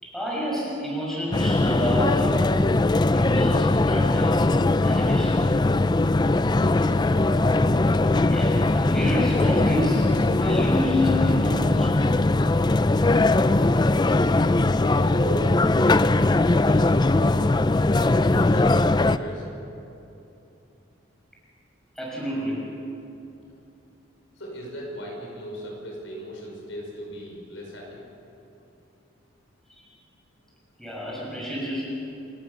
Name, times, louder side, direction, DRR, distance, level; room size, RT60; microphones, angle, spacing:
voice 1, 0.0-2.4 3.1-4.4 4.8-5.5 8.3-12.0 22.0-22.7 29.7-29.8 30.8-31.8, left 1 dB, ahead, -5 dB, 6.5 m, -29 dB
sound 1, 1.3-19.2, left 2 dB, 20° left, 0.4 m, -20 dB
voice 2, 6.5-7.4 13.4-17.5 17.9-18.7 19.0-19.5 23.4-23.5 24.4-28.0, equal, 75° left, -1 dB, 5.8 m, -37 dB
29.0 x 15.0 x 7.0 m, 2.8 s
head